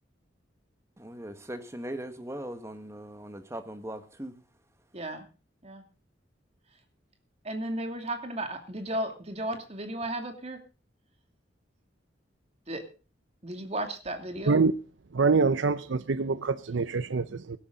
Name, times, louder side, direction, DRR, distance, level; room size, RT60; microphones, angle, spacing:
voice 1, 1.0-4.3, right 1 dB, 15° right, 1.6 m, -39 dB
voice 2, 4.9-5.3 5.6-5.8 7.4-10.6 12.7-12.9 13.4-14.7, right 1 dB, 35° right, 2.6 m, -34 dB
voice 3, 15.1-17.6, right 4 dB, 80° right, 0.6 m, -25 dB
18.0 x 13.0 x 3.9 m
head